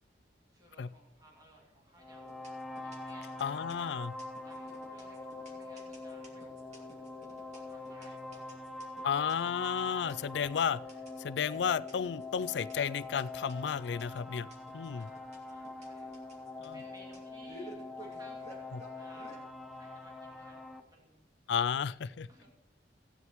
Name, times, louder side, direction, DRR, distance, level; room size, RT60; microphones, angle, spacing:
voice 1, 0.5-2.5 2.8-3.8 4.4-8.6 14.8-16.2 16.7-21.2 22.3-22.5, right 1 dB, 20° right, -2 dB, 2.4 m, -60 dB
sound 1, 2.0-20.8, left 2 dB, ahead, 0.9 m, -44 dB
sound 2, 2.3-19.4, right 1 dB, 40° right, 2.6 m, -53 dB
voice 2, 3.4-4.1 9.0-10.8 11.2-14.5 14.7-15.1 16.6-16.8 18.7-18.8 21.5-22.3, left 7 dB, 70° left, 18 dB, 0.4 m, -32 dB
16.5 x 9.5 x 3.1 m, 0.92 s
head